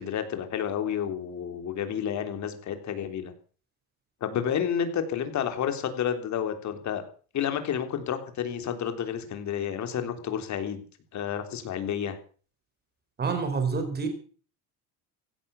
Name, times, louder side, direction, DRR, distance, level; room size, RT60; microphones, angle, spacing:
voice 1, 0.0-3.3 4.2-7.0 7.3-10.8 11.1-12.2, left 8 dB, 45° left, 7 dB, 3.5 m, -30 dB
voice 2, 13.2-14.1, right 5 dB, 25° right, 7 dB, 4.7 m, -27 dB
16.0 x 12.0 x 7.0 m, 0.42 s
cardioid pair, 125°, 39 cm